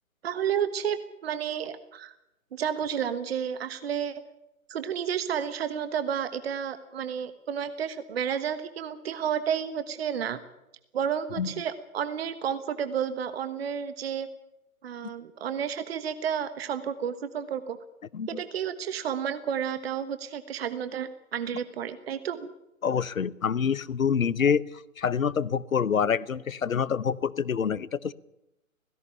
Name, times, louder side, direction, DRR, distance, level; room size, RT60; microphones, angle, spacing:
voice 1, 0.2-2.1 2.5-4.2 4.7-10.4 10.9-14.3 14.8-17.8 18.3-22.5, right 8 dB, 45° right, 12 dB, 1.3 m, -31 dB
voice 2, 22.8-24.7 25.0-28.1, left 7 dB, 70° left, 20 dB, 0.9 m, -26 dB
17.0 x 17.0 x 10.0 m, 0.87 s
figure-of-eight pair, 125°, 43 cm